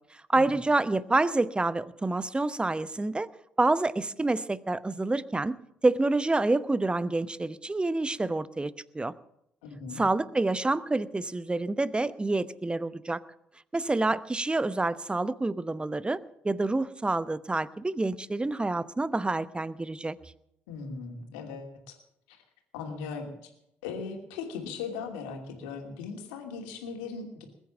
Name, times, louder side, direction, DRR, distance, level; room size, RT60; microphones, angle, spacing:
voice 1, 0.1-3.3 3.6-5.6 5.8-9.1 10.0-13.2 13.7-16.2 16.4-20.2, right 2 dB, 15° right, 17 dB, 0.9 m, -27 dB
voice 2, 9.6-10.0 20.7-22.0 22.3-22.4 22.7-23.5 23.8-27.4, left 5 dB, 75° left, 4 dB, 2.8 m, -38 dB
20.5 x 9.2 x 7.3 m, 0.78 s
hypercardioid pair, 50°, 6 cm